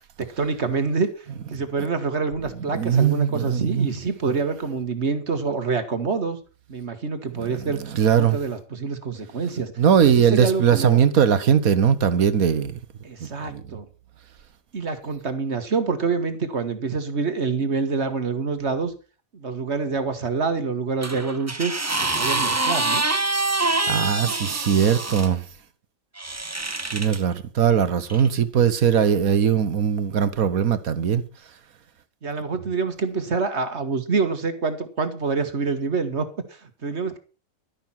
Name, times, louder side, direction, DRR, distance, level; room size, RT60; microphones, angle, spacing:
voice 1, 0.2-6.4 6.7-9.7 10.0-11.0 13.0-13.9 14.7-18.9 19.3-21.7 22.1-23.0 32.2-36.3 36.8-37.2, right 4 dB, 55° right, 1.9 m, -26 dB
voice 2, 2.7-3.9 7.3-8.4 9.8-12.8 13.2-13.8 23.6-25.4 26.9-31.2, right 8 dB, 90° right, 1.6 m, -20 dB
sound 1, 21.0-25.3 26.2-27.2 28.1-28.3, right 2 dB, 15° right, 0.6 m, -25 dB
12.0 x 10.5 x 5.8 m
omnidirectional pair, 1.4 m